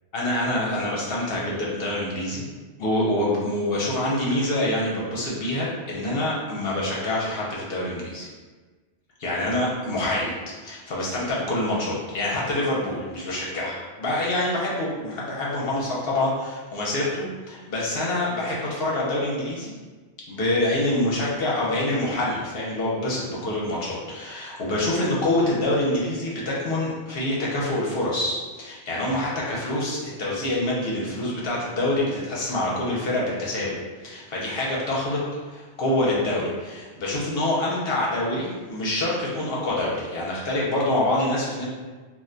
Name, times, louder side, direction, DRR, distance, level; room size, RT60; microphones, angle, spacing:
voice 1, 0.1-2.4 2.8-8.3 9.2-10.3 10.6-19.7 20.3-41.7, left 1 dB, 65° left, -5 dB, 0.8 m, -26 dB
2.4 x 2.2 x 3.7 m, 1.3 s
omnidirectional pair, 1.1 m